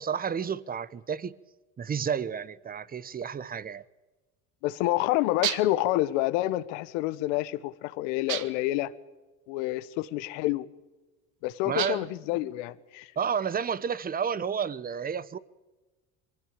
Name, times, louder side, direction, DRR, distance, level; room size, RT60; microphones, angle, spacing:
voice 1, 0.0-1.3 1.8-3.8 11.6-12.1 13.2-15.4, right 7 dB, 25° right, 1.0 m, -31 dB
voice 2, 4.6-8.9 9.5-10.7 11.4-13.1, left 16 dB, 80° left, 1.3 m, -28 dB
sound 1, 5.4-5.9 8.3-8.7 11.8-12.2, right 12 dB, 55° right, 1.3 m, -32 dB
23.0 x 16.5 x 8.7 m
supercardioid pair, 95°, 36 cm